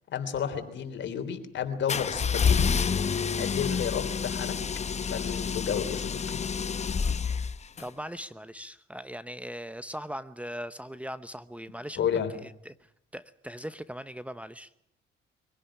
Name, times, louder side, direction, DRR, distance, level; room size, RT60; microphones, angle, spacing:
voice 1, 0.1-2.6 3.3-4.5 5.1-6.4 12.0-12.3, left 8 dB, 65° left, 8 dB, 3.3 m, -31 dB
sound 1, 1.9-7.9, left 6 dB, 35° left, 0.9 m, -28 dB
voice 2, 7.8-12.1 12.4-12.7 13.1-14.7, equal, 5° right, 14 dB, 0.9 m, -40 dB
23.5 x 16.5 x 10.0 m, 0.75 s
cardioid pair, 90°, 20 cm